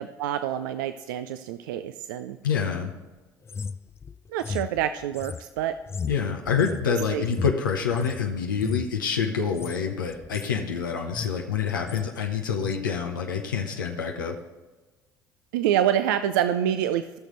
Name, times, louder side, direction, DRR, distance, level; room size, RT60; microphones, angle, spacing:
voice 1, 0.0-2.4 4.3-5.8 7.1-7.2 15.5-17.2, right 10 dB, 75° right, 10 dB, 0.4 m, -26 dB
voice 2, 2.4-2.9 6.1-14.4, left 6 dB, 85° left, 2 dB, 0.8 m, -27 dB
sound 1, 3.5-8.2 8.5-9.0 9.5-9.8 10.1-10.6 10.9-11.4 11.7-12.1 12.6-12.8, left 5 dB, 25° left, 0.3 m, -34 dB
17.5 x 6.5 x 3.1 m, 1.2 s
hypercardioid pair, 60°, 11 cm